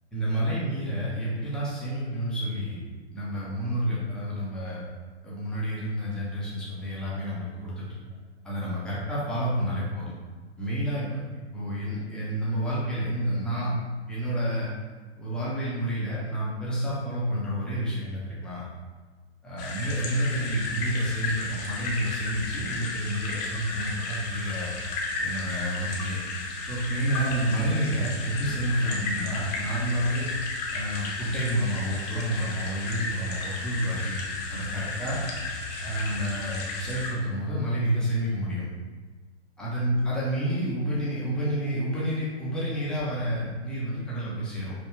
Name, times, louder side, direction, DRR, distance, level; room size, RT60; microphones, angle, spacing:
voice 1, 0.1-2.8 3.1-4.9 5.2-8.0 8.4-10.1 10.6-13.7 14.1-14.7 15.2-18.7 19.4-24.7 25.2-26.2 26.6-30.3 30.7-34.2 34.5-35.2 35.8-38.7 39.6-44.7, right 1 dB, ahead, -8 dB, 0.6 m, -29 dB
sound 1, 19.6-37.1, left 3 dB, 35° left, 0.8 m, -33 dB
5.1 x 2.2 x 3.3 m, 1.4 s
hypercardioid pair, 130°, 35 cm